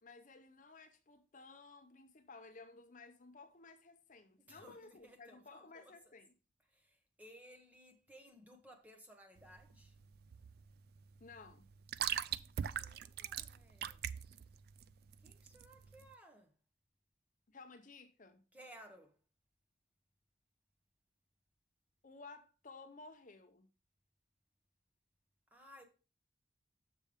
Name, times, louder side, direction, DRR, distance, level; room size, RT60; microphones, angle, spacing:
voice 1, 0.0-6.3 11.2-11.7 17.5-18.4 22.0-23.7, left 3 dB, 40° left, 0.6 m, -56 dB
voice 2, 4.5-5.9 6.7-9.9 12.6-14.0 15.2-16.5 18.5-19.1 25.5-25.8, equal, 10° right, 1.0 m, -59 dB
sound 1, 9.4-16.1, right 9 dB, 50° right, 0.3 m, -42 dB
6.5 x 5.1 x 5.0 m
head